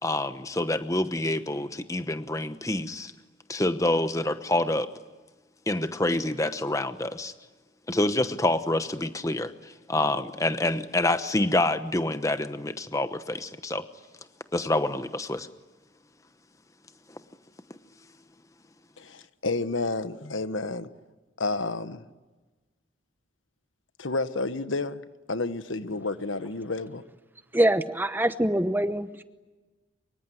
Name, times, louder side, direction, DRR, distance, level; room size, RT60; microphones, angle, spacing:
voice 1, 0.0-3.1 3.5-4.9 5.7-7.3 7.9-13.8 14.5-15.5 17.1-17.2, left 2 dB, 15° left, 11 dB, 1.0 m, -27 dB
voice 2, 19.0-20.9 21.4-22.0 24.0-25.0 25.3-27.0, left 3 dB, 85° left, 12 dB, 1.3 m, -30 dB
voice 3, 27.5-29.2, right 1 dB, 10° right, 11 dB, 0.9 m, -24 dB
25.0 x 23.5 x 9.5 m, 1.2 s
head